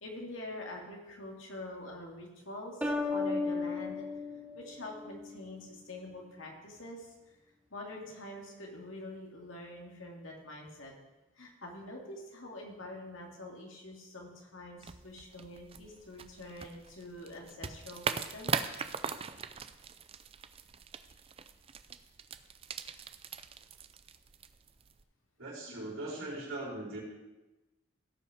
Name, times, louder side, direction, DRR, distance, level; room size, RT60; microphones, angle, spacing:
voice 1, 0.0-4.1 4.6-7.1 7.7-10.9 11.4-18.5, left 1 dB, 75° left, 0 dB, 2.4 m, -45 dB
sound 1, 2.8-5.4, left 3 dB, 5° right, 1.1 m, -35 dB
sound 2, 14.8-25.0, right 6 dB, 30° right, 0.4 m, -41 dB
voice 2, 25.4-27.0, right 2 dB, 85° right, -5 dB, 4.2 m, -40 dB
16.5 x 5.6 x 5.0 m, 1.0 s
head